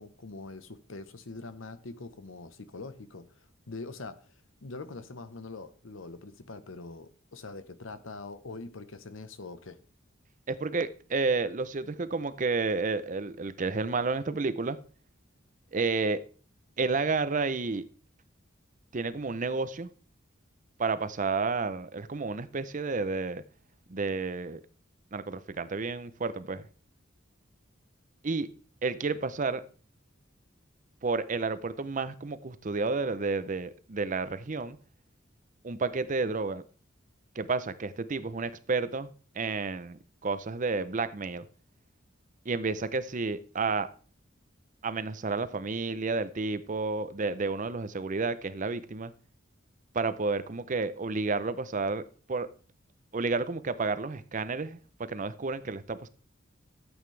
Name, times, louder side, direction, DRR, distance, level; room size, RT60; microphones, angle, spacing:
voice 1, 0.0-3.3 3.7-4.2 4.6-9.8, left 3 dB, 85° left, 1.0 m, -43 dB
voice 2, 10.5-14.8 15.7-16.2 16.8-17.8 18.9-19.9 20.8-23.4 23.9-24.6 25.1-26.6 28.2-28.5 28.8-29.6 31.0-34.8 35.6-36.6 37.4-41.5 42.5-43.9 44.8-49.1 49.9-52.0 52.3-52.5 53.1-54.8 55.1-56.1, right 4 dB, 40° right, 0.6 m, -31 dB
12.5 x 8.1 x 3.3 m
head